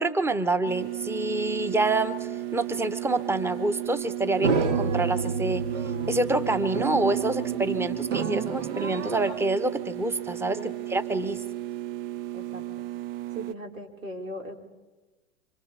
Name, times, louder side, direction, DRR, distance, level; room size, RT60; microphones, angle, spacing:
voice 1, 0.0-5.7 6.1-10.6 10.9-11.4, right 2 dB, 5° right, 12 dB, 1.0 m, -27 dB
sound 1, 0.7-13.5, right 14 dB, 45° right, 0.6 m, -34 dB
sound 2, 4.4-9.4, right 5 dB, 75° right, 2.1 m, -29 dB
voice 2, 12.3-12.8 13.3-14.6, right 1 dB, 90° right, 2 dB, 3.7 m, -38 dB
27.5 x 25.5 x 4.2 m, 1.2 s
hypercardioid pair, 105°, 39 cm